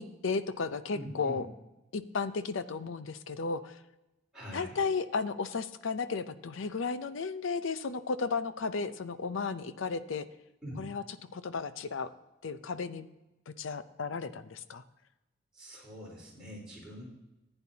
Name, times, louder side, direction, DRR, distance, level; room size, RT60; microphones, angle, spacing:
voice 1, 0.0-1.5 1.9-3.7 4.5-10.3 10.8-11.0 11.3-12.1 12.4-13.1 13.5-14.8, left 4 dB, 75° left, 13 dB, 0.6 m, -34 dB
voice 2, 0.9-1.4 4.3-4.8 10.6-10.8 15.5-17.0, equal, 5° right, -7 dB, 4.0 m, -44 dB
14.5 x 8.9 x 2.8 m, 0.99 s
head